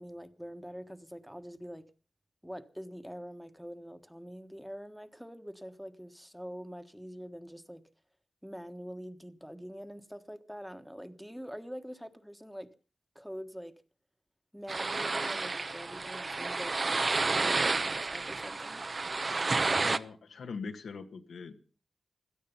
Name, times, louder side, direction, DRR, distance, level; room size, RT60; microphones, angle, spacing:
voice 1, 0.0-1.9 2.4-7.8 8.4-12.7 13.1-13.7 14.5-18.8, equal, ahead, 1.4 m, -45 dB
sound 1, 14.7-20.0, right 3 dB, 45° right, 0.9 m, -31 dB
voice 2, 19.6-21.5, left 5 dB, 90° left, 1.7 m, -42 dB
17.0 x 12.5 x 5.6 m
cardioid pair, 65°, 0 cm